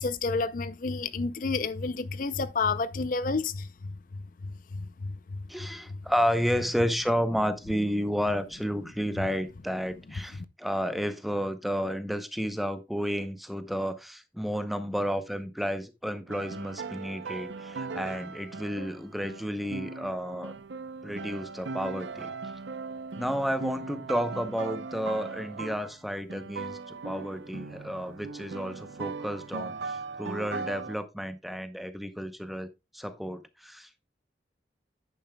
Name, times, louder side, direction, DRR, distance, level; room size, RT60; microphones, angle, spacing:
voice 1, 0.0-3.7 4.4-5.4, left 4 dB, 50° left, 0.5 m, -30 dB
voice 2, 5.5-20.5 21.0-22.3 23.2-34.1, equal, ahead, 0.7 m, -31 dB
sound 1, 16.3-26.0 26.3-31.0, right 4 dB, 85° right, 0.6 m, -39 dB
10.5 x 9.2 x 2.2 m
head